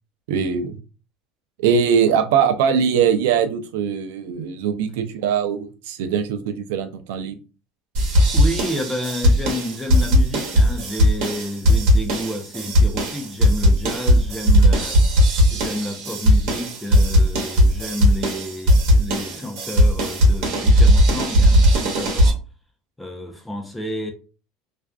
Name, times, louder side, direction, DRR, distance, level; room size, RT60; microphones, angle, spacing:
voice 1, 0.3-0.8 1.6-7.4, right 7 dB, 85° right, 0.4 m, -21 dB
sound 1, 7.9-22.3, equal, 60° right, 1.0 m, -17 dB
voice 2, 8.3-15.0 15.5-22.4 23.0-24.1, left 1 dB, 5° left, 0.5 m, -30 dB
2.5 x 2.2 x 2.3 m
supercardioid pair, 135°, 0 cm